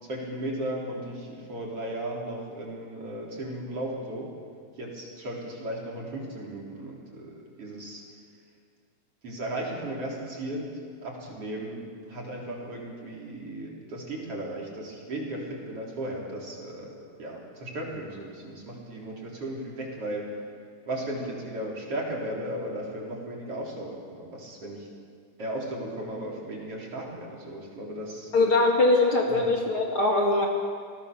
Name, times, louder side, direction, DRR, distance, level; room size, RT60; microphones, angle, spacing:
voice 1, 0.0-4.3 4.8-8.0 9.2-20.4 20.9-24.9 25.4-28.3 29.3-29.4, right 1 dB, 45° right, -2 dB, 4.7 m, -36 dB
voice 2, 28.3-30.5, left 2 dB, 45° left, 0 dB, 2.7 m, -22 dB
29.0 x 19.5 x 6.9 m, 2.1 s
omnidirectional pair, 3.7 m